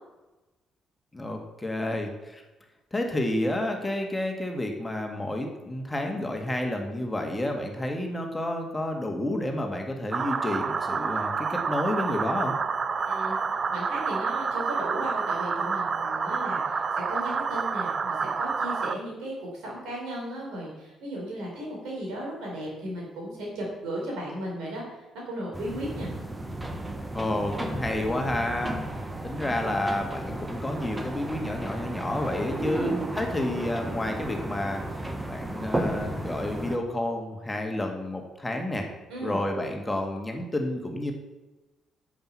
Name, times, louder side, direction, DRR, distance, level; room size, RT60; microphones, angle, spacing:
voice 1, 1.1-2.4 2.9-12.5 27.1-28.8 29.2-34.8 35.3-38.9 39.2-41.1, left 1 dB, 15° left, 3 dB, 2.1 m, -30 dB
sound 1, 10.1-18.9, right 5 dB, 40° right, 0.6 m, -28 dB
voice 2, 13.1-13.4 13.7-24.8 25.3-26.1 32.7-32.9 39.1-39.4, right 1 dB, 65° right, -3 dB, 4.5 m, -35 dB
sound 2, 25.5-36.8, right 1 dB, 15° right, 1.6 m, -33 dB
10.0 x 7.8 x 5.7 m, 1.1 s
figure-of-eight pair, 45°, 0 cm